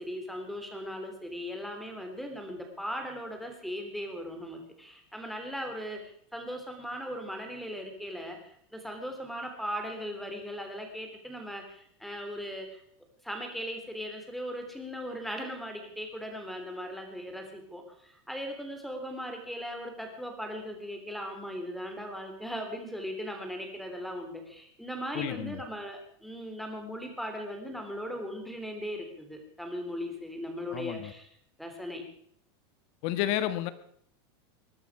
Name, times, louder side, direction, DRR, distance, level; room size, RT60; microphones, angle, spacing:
voice 1, 0.0-12.8 13.2-31.3 31.6-32.0, equal, ahead, 4 dB, 3.2 m, -38 dB
voice 2, 25.1-25.6 30.7-31.1 33.0-33.7, left 12 dB, 50° left, 13 dB, 1.5 m, -31 dB
21.0 x 11.5 x 4.9 m, 0.65 s
supercardioid pair, 150°, 14 cm